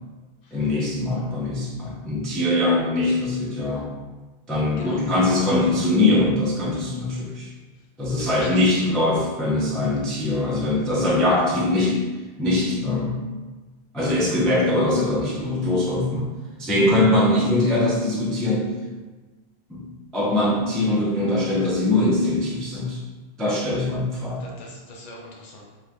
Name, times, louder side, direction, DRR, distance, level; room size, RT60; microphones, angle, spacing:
voice 1, 0.5-3.9 4.5-7.5 8.0-12.0 12.4-13.2 13.9-16.3 16.6-18.7 19.7-23.0 23.4-24.5, left 2 dB, ahead, -6 dB, 0.4 m, -22 dB
voice 2, 8.2-8.7 24.4-25.8, left 1 dB, 45° left, -2 dB, 0.7 m, -41 dB
3.0 x 2.4 x 3.4 m, 1.2 s
omnidirectional pair, 1.1 m